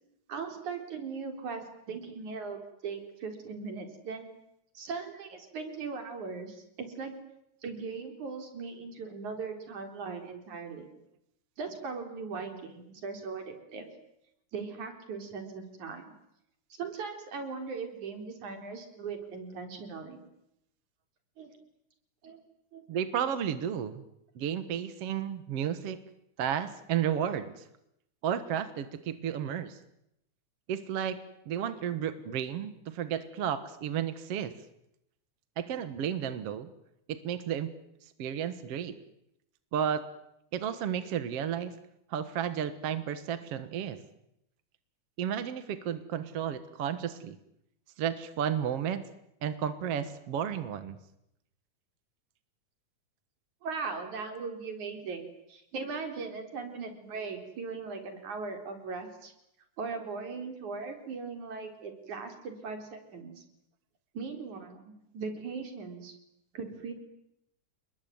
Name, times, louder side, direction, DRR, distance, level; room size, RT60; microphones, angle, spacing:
voice 1, 0.3-4.3 4.8-7.1 7.6-10.9 11.6-13.9 14.5-16.1 16.8-20.2 21.4-21.5 22.2-22.4 22.7-22.8 53.6-59.3 59.8-63.4 64.1-66.1 66.5-66.9, right 4 dB, 75° right, 6 dB, 5.3 m, -39 dB
voice 2, 22.9-24.0 24.4-26.0 26.4-27.6 28.2-29.8 30.7-31.2 31.5-34.5 35.6-36.7 37.1-37.7 38.0-39.0 39.7-40.0 40.5-41.7 42.1-44.0 45.2-47.4 48.0-49.0 49.4-51.0, right 9 dB, 55° right, 11 dB, 2.2 m, -32 dB
30.0 x 21.0 x 9.5 m, 0.81 s
omnidirectional pair, 3.4 m